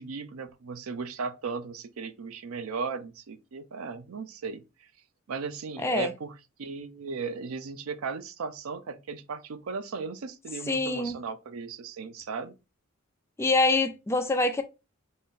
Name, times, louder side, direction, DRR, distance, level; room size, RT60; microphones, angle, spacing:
voice 1, 0.0-4.9 5.3-6.3 6.6-12.5, right 5 dB, 85° right, 0.5 m, -36 dB
voice 2, 5.8-6.1 10.7-11.2 13.4-14.6, left 2 dB, 10° left, 0.4 m, -25 dB
3.9 x 2.5 x 3.7 m
head